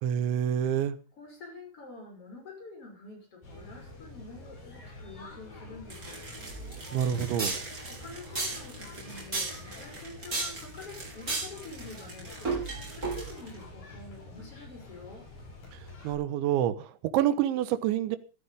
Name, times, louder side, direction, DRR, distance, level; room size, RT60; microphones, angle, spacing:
voice 1, 0.0-1.0 6.9-7.6 15.7-15.8 16.0-18.2, right 10 dB, 85° right, 12 dB, 3.6 m, -27 dB
voice 2, 1.2-6.3 7.9-15.3, left 3 dB, 30° left, 3 dB, 6.6 m, -47 dB
sound 1, 3.4-16.1, left 2 dB, 50° left, 9.2 m, -47 dB
sound 2, 5.9-13.6, right 3 dB, 20° right, 6.1 m, -35 dB
15.5 x 13.0 x 5.4 m, 0.35 s
omnidirectional pair, 5.2 m